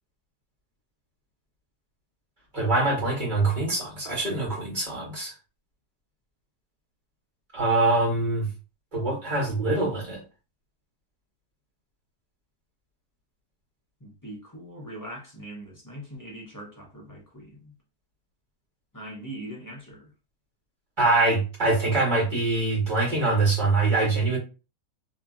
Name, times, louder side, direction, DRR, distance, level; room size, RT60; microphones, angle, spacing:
voice 1, 2.5-5.3 7.5-8.5 8.9-10.2 21.0-24.4, right 3 dB, 30° right, 1.4 m, -24 dB
voice 2, 14.0-17.7 18.9-20.1, right 1 dB, 25° left, 0.4 m, -41 dB
2.9 x 2.6 x 2.4 m
omnidirectional pair, 1.6 m